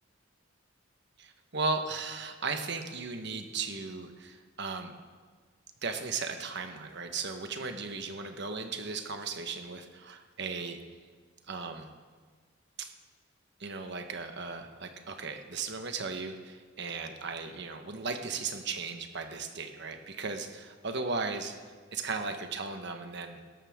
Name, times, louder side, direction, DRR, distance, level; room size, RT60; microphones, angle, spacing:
voice 1, 1.2-4.9 5.8-10.8 11.5-11.9 12.8-12.9 13.6-21.6 21.9-23.4, right 4 dB, 60° right, 6 dB, 1.2 m, -36 dB
17.5 x 13.5 x 3.7 m, 1.5 s
head